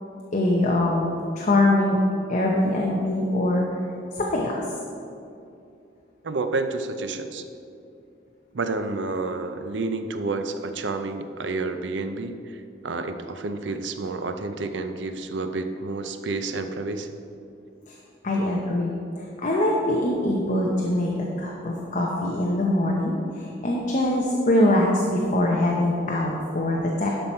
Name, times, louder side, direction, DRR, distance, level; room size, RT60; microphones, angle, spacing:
voice 1, 0.3-2.0 2.3-3.6 4.1-4.6 17.9-18.0 18.2-27.1, left 1 dB, 40° left, -2 dB, 0.9 m, -23 dB
voice 2, 6.2-7.4 8.5-12.4 12.8-17.1, right 3 dB, 75° right, 8 dB, 0.6 m, -29 dB
11.5 x 6.0 x 4.4 m, 2.6 s
head